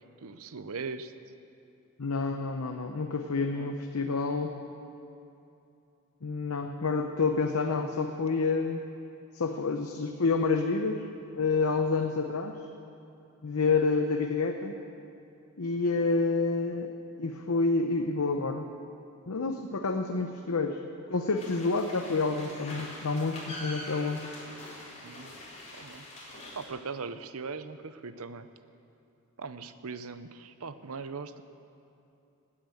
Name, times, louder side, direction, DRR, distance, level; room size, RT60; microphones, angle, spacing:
voice 1, 0.2-1.1 3.5-3.7 25.0-25.4 25.7-26.1 26.5-28.5 29.4-31.4, right 4 dB, 70° right, 12 dB, 0.7 m, -40 dB
voice 2, 2.0-4.6 6.2-8.8 9.3-11.1 11.3-12.6 13.4-14.7 15.6-16.9 17.2-18.7 19.3-20.8 21.1-24.3, left 4 dB, 75° left, 5 dB, 0.8 m, -28 dB
sound 1, 21.4-26.7, left 1 dB, 30° left, 3.8 m, -44 dB
19.5 x 8.6 x 7.8 m, 2.8 s
head